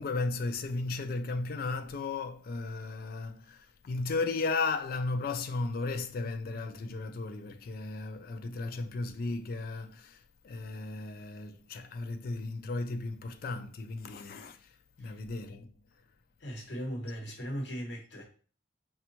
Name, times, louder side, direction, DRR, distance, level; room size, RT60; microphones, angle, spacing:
voice 1, 0.0-14.7 15.0-15.7, left 3 dB, 50° left, 0.3 m, -35 dB
voice 2, 16.4-18.2, equal, 65° left, 1.1 m, -38 dB
4.9 x 2.3 x 2.9 m
head